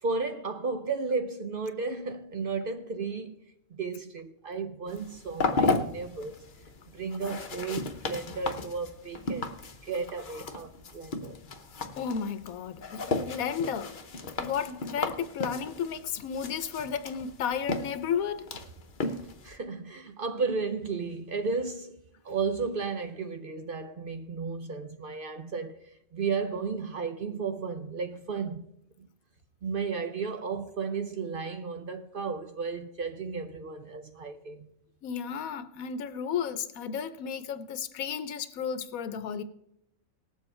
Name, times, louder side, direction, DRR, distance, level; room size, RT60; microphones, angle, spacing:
voice 1, 0.0-3.4 3.7-6.4 6.9-9.5 9.8-11.4 19.0-22.0 22.2-28.7 29.0-29.1 29.6-34.7, right 4 dB, 55° right, 0.6 m, -34 dB
sound 1, 4.9-19.6, left 3 dB, 45° left, 0.8 m, -35 dB
voice 2, 11.9-14.0 14.4-18.5 35.0-39.4, left 7 dB, 90° left, 1.2 m, -33 dB
18.5 x 7.4 x 4.3 m
omnidirectional pair, 1.4 m